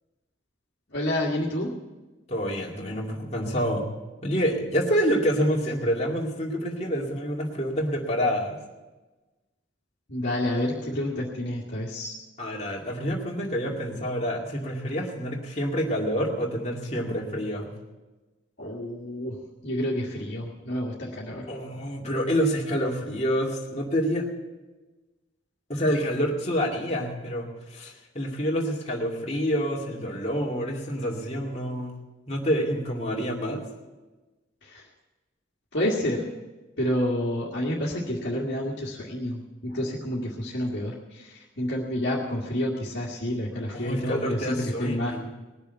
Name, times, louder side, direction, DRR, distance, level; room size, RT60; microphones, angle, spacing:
voice 1, 0.9-1.7 10.1-12.2 18.6-19.4 19.6-21.5 34.6-34.8 35.7-36.3 36.8-45.2, left 1 dB, 60° left, -5 dB, 1.9 m, -29 dB
voice 2, 2.3-3.8 4.2-8.6 12.4-17.7 21.5-24.3 25.7-32.0 32.3-33.7 43.7-45.3, equal, 35° left, -2 dB, 2.4 m, -27 dB
20.0 x 6.9 x 8.1 m, 1.2 s
head